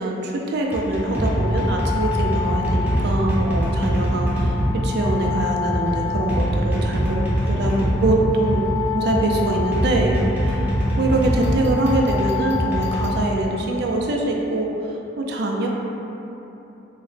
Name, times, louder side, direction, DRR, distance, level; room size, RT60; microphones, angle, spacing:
voice 1, 0.0-7.7 8.0-8.6 8.9-14.7 15.2-15.7, right 2 dB, 55° right, 0 dB, 0.4 m, -23 dB
sound 1, 0.7-13.8, left 1 dB, 10° right, 0.6 m, -23 dB
3.7 x 2.1 x 3.2 m, 3.0 s
head